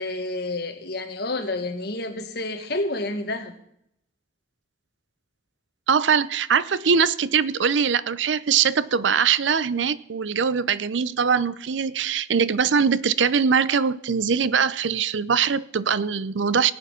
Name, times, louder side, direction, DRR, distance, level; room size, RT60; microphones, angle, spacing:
voice 1, 0.0-3.5, left 2 dB, 60° left, 1.7 m, -29 dB
voice 2, 5.9-16.7, right 6 dB, 85° right, 0.6 m, -22 dB
18.5 x 8.5 x 5.7 m
head